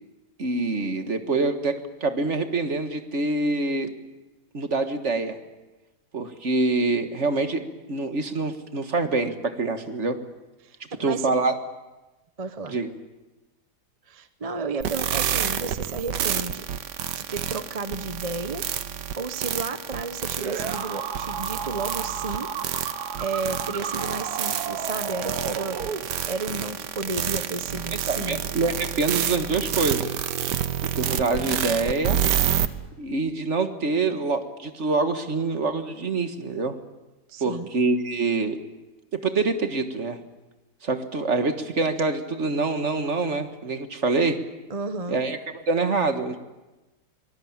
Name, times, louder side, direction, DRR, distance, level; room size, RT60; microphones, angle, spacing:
voice 1, 0.4-3.9 4.5-5.4 6.1-10.2 11.0-11.6 12.7-12.9 27.9-30.1 30.9-32.2 33.0-36.8 37.4-38.6 39.1-40.2 40.8-44.4 45.1-46.4, right 3 dB, 45° right, 8 dB, 1.9 m, -25 dB
voice 2, 10.6-11.3 12.4-12.8 14.1-16.7 17.1-18.7 19.1-22.5 23.2-28.4 37.3-37.7 44.7-45.2, right 3 dB, 25° right, 10 dB, 0.8 m, -32 dB
sound 1, 14.8-32.7, right 9 dB, 85° right, 1.6 m, -28 dB
sound 2, 20.4-26.5, right 6 dB, 65° right, 1.9 m, -33 dB
24.5 x 20.0 x 8.8 m, 1.1 s
omnidirectional pair, 1.8 m